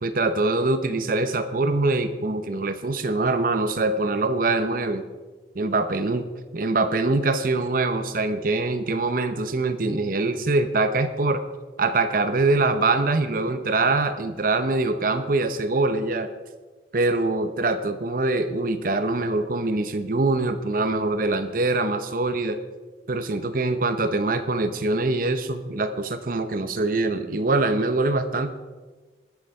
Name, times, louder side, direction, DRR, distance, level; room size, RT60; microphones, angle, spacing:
voice 1, 0.0-5.0 5.5-6.2 6.5-11.4 11.8-16.3 16.9-22.6 23.1-28.5, right 2 dB, 50° right, 10 dB, 0.8 m, -23 dB
20.0 x 6.9 x 4.8 m, 1.3 s
head